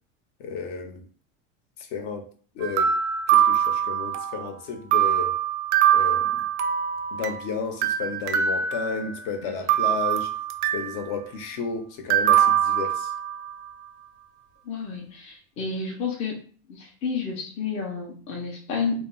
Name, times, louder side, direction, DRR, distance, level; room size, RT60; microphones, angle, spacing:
voice 1, 0.4-1.0 1.8-2.2 2.5-2.9 3.3-5.3 5.9-6.4 7.1-10.3 10.7-13.1, left 5 dB, 60° left, 5 dB, 0.7 m, -32 dB
sound 1, 2.6-4.5 4.9-7.4 7.8-9.3 9.7-11.0 12.1-13.5, right 10 dB, 80° right, 0.5 m, -23 dB
voice 2, 14.6-16.4 16.7-19.0, left 5 dB, 20° left, 0 dB, 0.4 m, -30 dB
2.2 x 2.0 x 3.6 m, 0.43 s
supercardioid pair, 150°, 36 cm